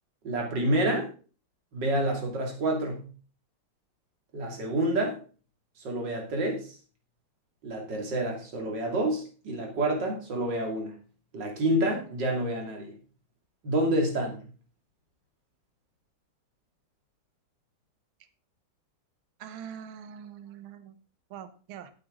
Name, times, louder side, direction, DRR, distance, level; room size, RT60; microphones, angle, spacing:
voice 1, 0.2-1.1 1.7-3.0 4.3-5.2 5.8-6.8 7.6-10.9 11.3-13.0 13.6-14.5, right 1 dB, 55° right, 1 dB, 3.2 m, -28 dB
voice 2, 19.4-21.0 21.3-21.9, right 8 dB, 75° right, 11 dB, 1.8 m, -43 dB
12.5 x 8.3 x 3.8 m, 0.38 s
omnidirectional pair, 2.3 m